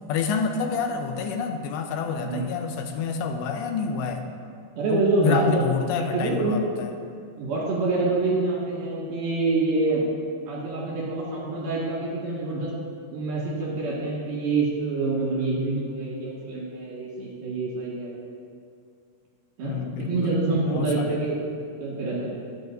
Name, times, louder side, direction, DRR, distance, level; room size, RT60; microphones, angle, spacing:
voice 1, 0.0-4.3 4.9-6.9 19.6-21.2, left 5 dB, 80° left, 5 dB, 2.8 m, -28 dB
voice 2, 4.8-5.4 6.1-6.6 7.4-10.1 10.5-12.7 13.1-18.1 19.6-21.4 21.8-22.3, right 3 dB, 60° right, -6 dB, 3.6 m, -26 dB
23.5 x 8.5 x 2.6 m, 2.3 s
omnidirectional pair, 5.1 m